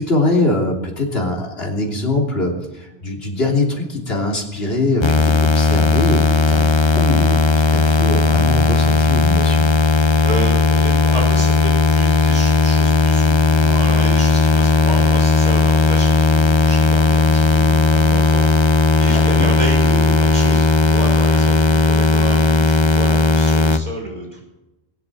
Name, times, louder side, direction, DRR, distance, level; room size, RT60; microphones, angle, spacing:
voice 1, 0.0-6.7 6.9-9.7 19.1-19.5, left 2 dB, 65° left, 0 dB, 3.3 m, -22 dB
sound 1, 5.0-23.8, left 3 dB, 30° left, 0.7 m, -15 dB
voice 2, 10.2-24.4, right 1 dB, 40° right, -1 dB, 5.3 m, -30 dB
21.5 x 8.3 x 7.4 m, 0.98 s
omnidirectional pair, 1.1 m